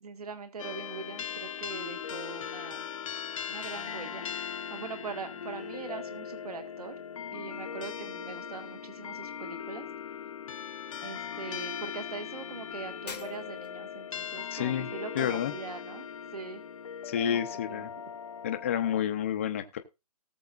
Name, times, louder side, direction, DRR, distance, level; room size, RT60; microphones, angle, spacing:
voice 1, 0.0-2.9 3.5-4.3 4.7-7.0 7.3-9.9 11.0-16.1 16.3-16.6 17.3-17.4 17.7-17.9, right 5 dB, 65° right, 8 dB, 1.7 m, -42 dB
sound 1, 0.6-19.0, left 8 dB, 55° left, 0.7 m, -39 dB
Shatter, 13.1-13.9, left 5 dB, 90° left, 1.4 m, -44 dB
voice 2, 14.5-14.9 15.2-15.5 17.0-17.9 18.4-19.8, left 9 dB, 20° left, 8 dB, 0.5 m, -30 dB
18.5 x 6.9 x 2.5 m, 0.26 s
hypercardioid pair, 165°, 20 cm